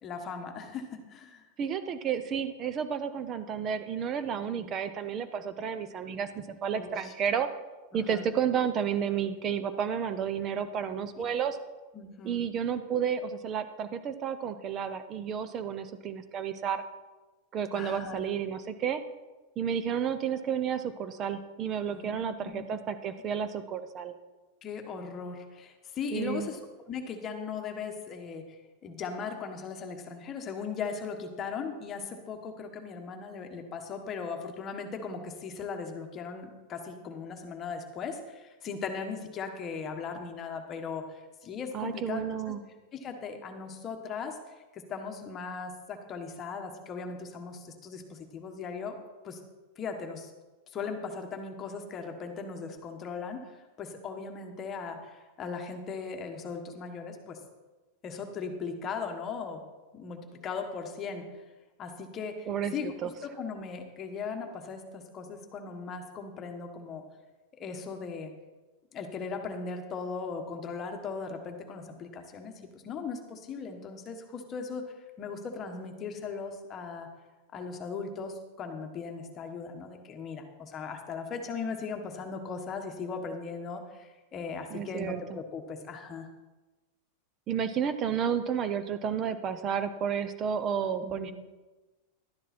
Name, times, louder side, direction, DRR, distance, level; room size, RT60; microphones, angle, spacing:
voice 1, 0.0-1.4 4.5-4.7 6.7-7.1 7.9-8.2 11.2-11.4 11.9-12.4 17.7-18.2 21.9-22.6 24.6-26.6 26.9-28.4 28.8-42.2 43.0-44.4 44.7-49.0 49.2-49.4 49.8-50.3 50.7-57.4 58.0-59.6 59.9-61.4 61.8-62.9 63.2-67.0 67.6-68.3 68.9-72.5 72.8-77.1 77.5-86.3 91.0-91.3, left 5 dB, 25° left, 4 dB, 1.4 m, -38 dB
voice 2, 1.6-7.5 7.9-11.6 12.2-16.8 17.5-19.0 19.6-24.1 26.1-26.5 41.7-42.6 62.5-63.1 84.7-85.4 87.5-91.3, right 8 dB, 30° right, 11 dB, 0.8 m, -31 dB
12.0 x 10.0 x 4.4 m, 1.2 s
supercardioid pair, 150°, 0 cm